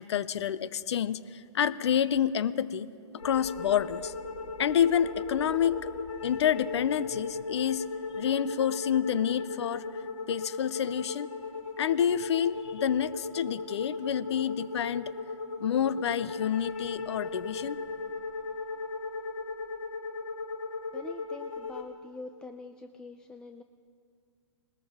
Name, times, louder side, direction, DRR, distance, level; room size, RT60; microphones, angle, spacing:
voice 1, 0.0-4.1 4.6-5.9 6.2-7.8 8.2-9.9 10.3-11.3 11.8-15.1 15.6-17.8, left 9 dB, 60° left, 18 dB, 0.6 m, -28 dB
sound 1, 3.2-21.8, left 3 dB, 85° left, 1.8 m, -37 dB
voice 2, 20.9-23.6, left 3 dB, 5° left, 7 dB, 0.3 m, -45 dB
20.5 x 19.5 x 3.5 m, 2.3 s
figure-of-eight pair, 120°, 16 cm